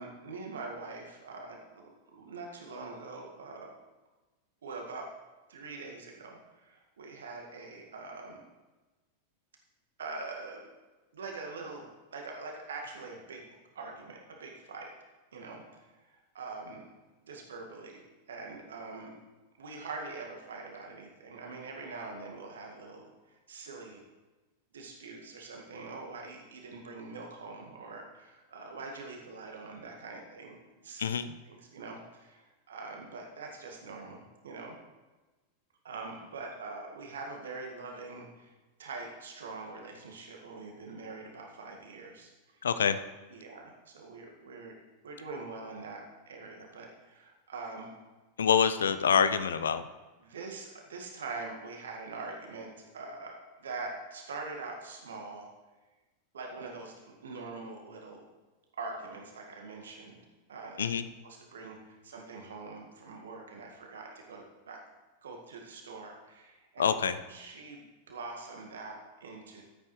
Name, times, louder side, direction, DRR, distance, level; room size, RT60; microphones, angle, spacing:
voice 1, 0.0-3.8 4.6-5.1 5.5-8.4 10.0-10.7 11.1-13.5 13.8-14.9 15.3-16.8 17.2-19.1 19.6-24.0 24.7-31.0 31.5-34.8 35.8-38.5 38.8-42.6 43.3-44.8 45.0-47.9 50.2-55.5 56.3-58.3 58.8-60.2 60.5-60.8 61.2-64.8 65.2-66.8 67.3-69.6, right 3 dB, 65° right, 1 dB, 1.8 m, -44 dB
voice 2, 31.0-31.3 42.6-43.0 48.4-49.8 60.8-61.1 66.8-67.2, left 7 dB, 65° left, 12 dB, 0.5 m, -26 dB
14.5 x 8.5 x 3.2 m, 1.2 s
figure-of-eight pair, 90°, 0 cm